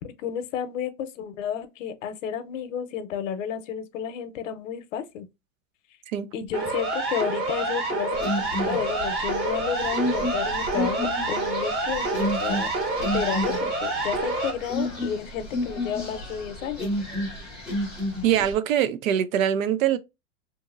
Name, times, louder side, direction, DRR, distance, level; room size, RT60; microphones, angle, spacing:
voice 1, 0.0-5.3 6.3-12.7 13.0-16.9, left 8 dB, 70° left, 0.7 m, -32 dB
Siren, 6.5-14.5, right 2 dB, 35° right, 1.1 m, -27 dB
sound 1, 8.1-18.5, left 1 dB, ahead, 0.4 m, -31 dB
voice 2, 18.2-20.0, right 10 dB, 85° right, 0.6 m, -23 dB
2.8 x 2.6 x 2.4 m
supercardioid pair, 150°, 39 cm